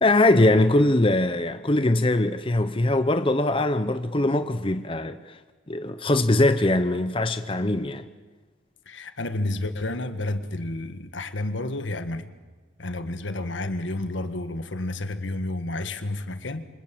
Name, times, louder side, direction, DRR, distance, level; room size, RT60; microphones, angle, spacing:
voice 1, 0.0-5.4 5.7-8.0, left 2 dB, 25° left, 0.8 m, -22 dB
voice 2, 8.9-12.3 12.8-16.6, left 2 dB, 70° left, 1.7 m, -30 dB
28.0 x 25.5 x 7.7 m
head